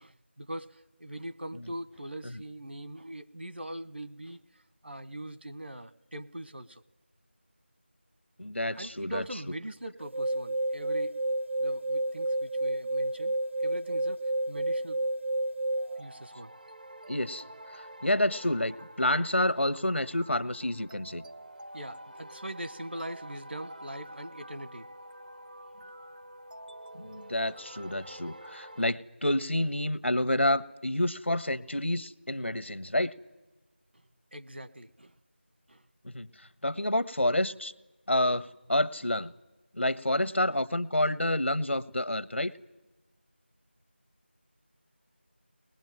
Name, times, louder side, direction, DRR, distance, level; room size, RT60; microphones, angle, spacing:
voice 1, 0.0-6.8 8.7-11.2 11.6-15.0 16.0-16.5 21.7-24.9 34.3-35.2 35.7-35.8, right 1 dB, 65° right, 13 dB, 1.4 m, -42 dB
voice 2, 8.4-9.2 17.1-17.4 17.7-21.2 26.9-33.1 36.0-37.7 38.1-39.3 39.7-42.5, left 1 dB, 90° left, 17 dB, 1.2 m, -29 dB
sound 1, 10.0-16.0, right 1 dB, 85° right, 0.7 m, -30 dB
sound 2, 15.8-28.9, right 1 dB, 45° right, 0.7 m, -48 dB
23.5 x 21.0 x 9.1 m, 1.2 s
figure-of-eight pair, 175°, 6 cm